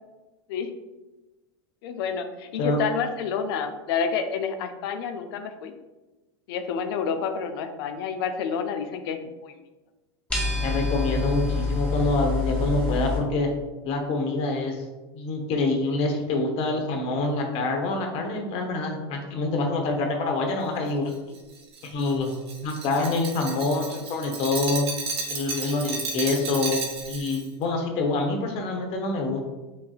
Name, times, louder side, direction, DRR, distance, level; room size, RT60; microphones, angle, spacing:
voice 1, 1.8-5.7 6.5-9.5, left 6 dB, 70° left, 8 dB, 0.5 m, -29 dB
sound 1, 10.3-13.2, left 3 dB, 10° left, 1.2 m, -26 dB
voice 2, 10.6-13.5 13.8-14.8 15.1-21.4 21.8-22.3 22.6-24.9 25.3-26.8 27.1-29.4, left 2 dB, 45° left, 3 dB, 0.9 m, -26 dB
Glass, 21.1-27.4, right 4 dB, 80° right, 0.8 m, -33 dB
5.3 x 2.7 x 2.3 m, 1.2 s
hypercardioid pair, 100°, 13 cm